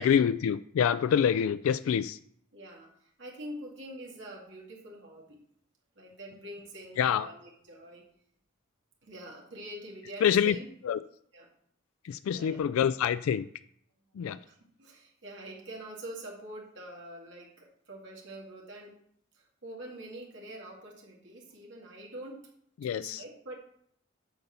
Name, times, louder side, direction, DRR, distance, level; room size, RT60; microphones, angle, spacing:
voice 1, 0.0-2.2 7.0-7.3 10.2-10.6 10.8-11.0 12.0-13.5 14.1-14.4 22.8-23.2, left 8 dB, 90° left, 14 dB, 0.3 m, -26 dB
voice 2, 2.5-5.4 6.0-8.0 9.0-10.7 11.3-11.5 12.3-12.6 14.2-18.9 19.3-22.5 22.9-23.6, right 1 dB, 60° right, -2 dB, 2.1 m, -45 dB
7.8 x 4.2 x 6.9 m, 0.67 s
head